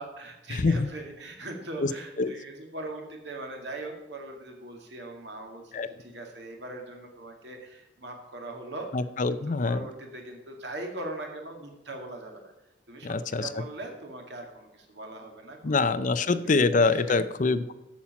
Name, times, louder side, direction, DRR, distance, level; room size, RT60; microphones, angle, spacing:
voice 1, 0.0-8.9 9.3-12.5 12.9-16.6 16.9-17.2, right 2 dB, 60° right, 2 dB, 2.2 m, -41 dB
voice 2, 0.5-0.9 1.8-1.9 2.2-2.3 5.7-5.9 8.9-9.8 13.0-13.5 15.6-17.7, left 3 dB, 40° left, 13 dB, 0.5 m, -25 dB
8.6 x 7.3 x 5.8 m, 0.99 s
head